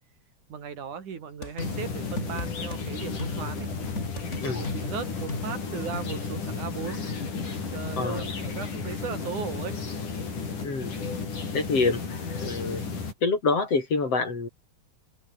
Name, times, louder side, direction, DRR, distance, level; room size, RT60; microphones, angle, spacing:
voice 1, 0.5-3.7 4.4-7.0 7.7-9.8, right 7 dB, 75° right, 4.7 m, -37 dB
sound 1, 1.4-2.8 3.2-6.3, left 2 dB, 20° left, 5.2 m, -37 dB
sound 2, 1.6-13.1, left 4 dB, 80° left, 7.0 m, -33 dB
voice 2, 10.6-11.0 11.5-12.0 12.4-12.8 13.2-14.5, left 4 dB, 50° left, 5.6 m, -26 dB
open air
omnidirectional pair, 3.5 m